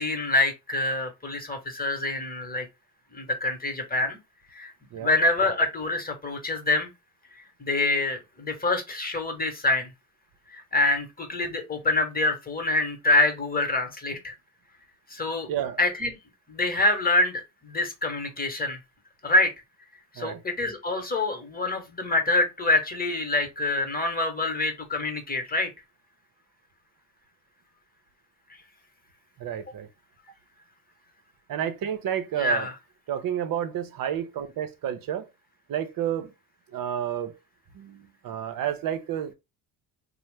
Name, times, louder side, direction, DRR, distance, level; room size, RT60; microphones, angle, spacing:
voice 1, 0.0-2.7 3.1-4.2 4.5-4.7 5.0-6.9 7.6-9.9 10.5-14.3 15.1-15.5 15.8-16.1 16.5-18.8 19.2-19.5 20.1-25.7 32.4-32.7, left 2 dB, 25° left, 1.0 m, -26 dB
voice 2, 15.5-15.8 20.2-20.4 29.4-29.9 31.5-32.7 33.1-35.3 35.7-36.3 36.7-37.4 37.7-39.3, right 10 dB, 55° right, 0.7 m, -30 dB
2.8 x 2.1 x 3.2 m
cardioid pair, 90°, 40 cm